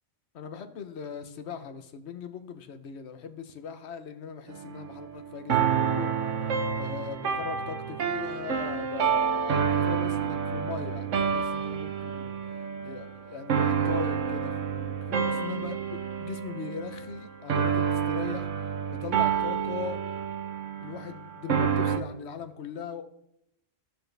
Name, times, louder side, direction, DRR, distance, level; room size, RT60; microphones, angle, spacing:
voice 1, 0.3-12.4 12.8-20.0 20.8-23.0, left 7 dB, 60° left, 8 dB, 1.1 m, -40 dB
sound 1, 4.5-22.0, right 7 dB, 75° right, 1.2 m, -29 dB
15.5 x 6.3 x 3.3 m, 0.79 s
omnidirectional pair, 1.3 m